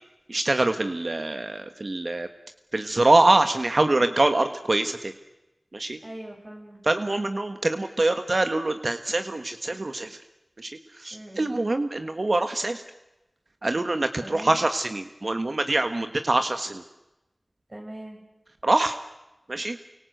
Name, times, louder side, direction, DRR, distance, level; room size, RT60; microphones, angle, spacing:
voice 1, 0.3-2.3 2.7-5.1 5.7-6.0 6.8-10.2 10.6-10.7 11.0-12.8 13.6-16.8 18.6-19.0 19.5-19.8, right 2 dB, 65° right, 8 dB, 1.4 m, -24 dB
voice 2, 6.0-6.8 11.1-11.5 14.2-14.6 17.7-18.2, right 1 dB, 45° right, 0 dB, 7.2 m, -40 dB
29.0 x 25.0 x 8.0 m, 1.0 s
wide cardioid pair, 45°, 0 cm